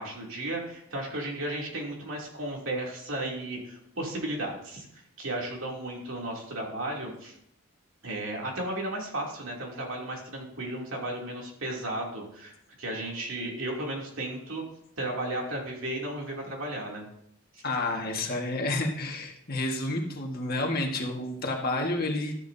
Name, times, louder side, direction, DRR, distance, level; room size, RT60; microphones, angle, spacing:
voice 1, 0.0-7.3 8.0-14.6 15.0-17.1 17.5-17.6, right 1 dB, 60° right, -1 dB, 2.9 m, -34 dB
voice 2, 17.6-22.4, left 2 dB, 45° left, 1 dB, 1.7 m, -30 dB
13.0 x 11.5 x 2.8 m, 0.71 s
head